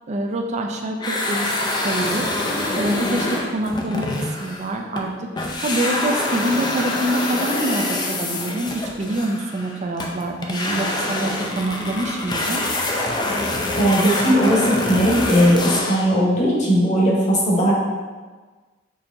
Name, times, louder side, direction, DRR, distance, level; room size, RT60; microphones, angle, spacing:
voice 1, 0.1-2.3 2.7-12.6, right 1 dB, 35° right, 3 dB, 0.4 m, -26 dB
sound 1, 1.0-5.1 5.4-16.2, left 2 dB, 25° left, 0.4 m, -25 dB
voice 2, 13.8-17.7, equal, 40° left, -4 dB, 1.0 m, -18 dB
6.4 x 2.8 x 2.6 m, 1.3 s
head